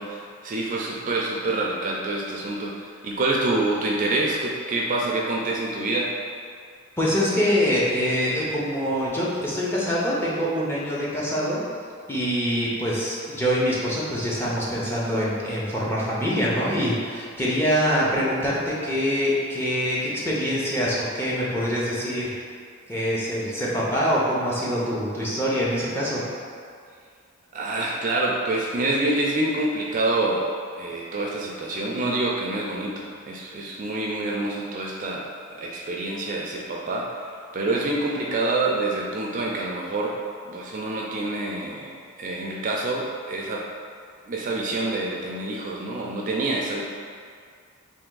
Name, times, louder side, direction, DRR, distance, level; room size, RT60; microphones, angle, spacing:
voice 1, 0.0-6.1 27.5-30.5 30.8-37.3 37.5-40.2 40.5-43.6 44.3-46.8, right 2 dB, 40° right, -2 dB, 0.4 m, -27 dB
voice 2, 7.0-11.6 12.1-22.3 22.9-26.2, equal, 10° left, -7 dB, 0.7 m, -24 dB
3.4 x 2.6 x 3.8 m, 2.2 s
head